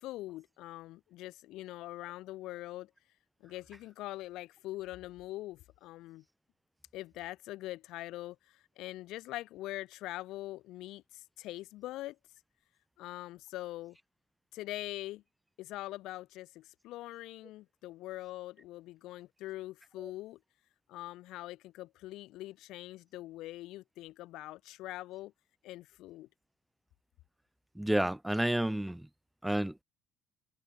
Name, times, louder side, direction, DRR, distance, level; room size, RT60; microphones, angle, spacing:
voice 1, 0.0-2.9 3.4-6.2 6.9-12.2 13.0-14.0 14.5-15.2 15.6-20.4 20.9-25.3 25.6-26.3, left 16 dB, 70° left, 2.2 m, -43 dB
voice 2, 27.7-29.1 29.4-29.7, right 1 dB, 5° right, 1.5 m, -30 dB
supercardioid pair, 100°, 0 cm